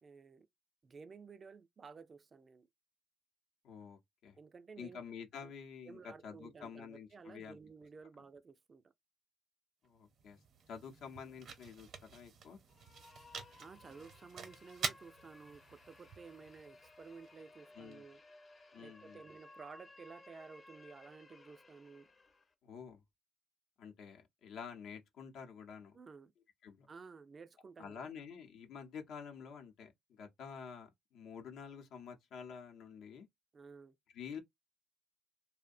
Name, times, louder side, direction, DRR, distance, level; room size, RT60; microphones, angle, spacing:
voice 1, 0.0-0.5 0.8-2.7 4.3-5.0 5.3-5.5 5.8-8.9 13.6-18.2 18.8-22.1 25.9-26.3 26.9-28.1 33.5-34.0, right 5 dB, 40° right, 0.3 m, -54 dB
voice 2, 3.6-4.4 4.8-7.6 9.8-10.4 10.7-12.6 17.8-18.0 18.7-19.2 22.6-23.0 23.8-26.0 26.6-26.9 27.8-33.3 34.1-34.4, left 6 dB, 80° left, 0.7 m, -49 dB
sound 1, 9.9-17.9, right 5 dB, 65° right, 0.7 m, -48 dB
sound 2, 12.7-22.5, left 2 dB, 30° left, 0.6 m, -60 dB
2.6 x 2.1 x 2.4 m
cardioid pair, 90°, 0 cm